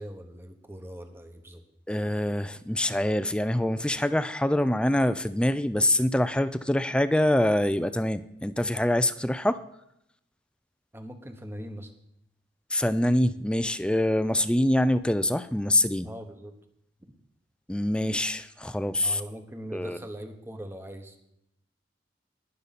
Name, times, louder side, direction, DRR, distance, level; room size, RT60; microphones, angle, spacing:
voice 1, 0.0-1.6 10.9-11.9 16.0-16.5 17.0-17.1 19.0-21.2, equal, 15° right, 6 dB, 1.1 m, -41 dB
voice 2, 1.9-9.6 12.7-16.1 17.7-19.2 19.7-20.0, left 1 dB, 5° left, 12 dB, 0.4 m, -25 dB
19.5 x 6.7 x 4.2 m, 0.79 s
head